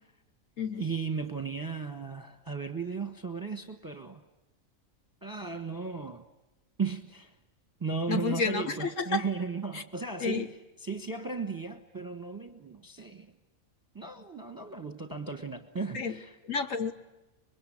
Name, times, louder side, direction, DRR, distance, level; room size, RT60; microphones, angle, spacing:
voice 1, 0.8-4.2 5.2-6.2 6.8-7.3 7.8-10.5 10.8-13.3 13.9-16.3, right 5 dB, 15° right, 1.2 m, -35 dB
voice 2, 8.1-9.2 9.7-9.8 10.2-10.5 15.9-16.2 16.4-16.9, left 4 dB, 70° left, 1.5 m, -30 dB
25.5 x 22.0 x 9.9 m
omnidirectional pair, 1.4 m